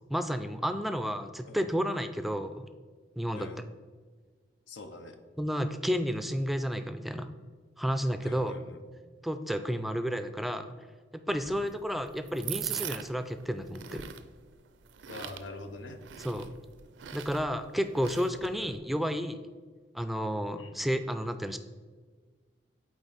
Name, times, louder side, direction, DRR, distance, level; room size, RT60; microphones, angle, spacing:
voice 1, 0.1-2.7 3.2-3.5 5.4-7.3 7.8-8.5 9.2-10.7 11.1-14.1 16.2-16.5 17.1-19.4 19.9-21.6, equal, ahead, 9 dB, 0.3 m, -31 dB
voice 2, 3.3-3.6 4.7-5.2 8.2-8.8 11.6-11.7 15.1-16.0 18.6-18.8 20.6-20.8, left 2 dB, 90° left, 7 dB, 0.7 m, -44 dB
sound 1, 11.3-18.8, right 10 dB, 80° right, 0.4 m, -42 dB
8.1 x 4.3 x 4.0 m, 1.5 s
head